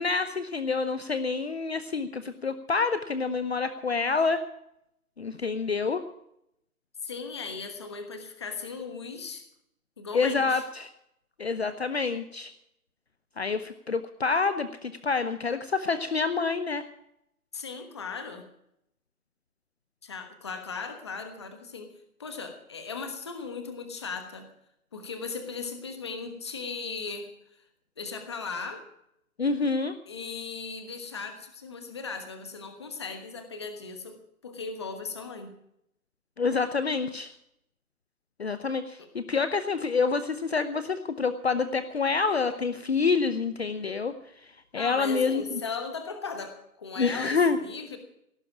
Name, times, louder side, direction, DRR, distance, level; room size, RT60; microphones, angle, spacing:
voice 1, 0.0-4.4 5.2-6.0 10.1-10.9 11.4-12.5 13.4-16.9 29.4-29.9 36.4-37.3 38.4-45.6 47.0-47.6, left 4 dB, 45° left, 11 dB, 0.8 m, -27 dB
voice 2, 7.0-9.4 10.0-10.6 17.5-18.4 20.0-21.9 22.2-24.5 24.9-27.6 28.0-28.8 30.1-34.2 34.4-35.5 39.0-39.1 44.7-48.0, left 4 dB, 20° left, 6 dB, 1.3 m, -37 dB
17.5 x 9.7 x 7.3 m, 0.78 s
hypercardioid pair, 175°, 45 cm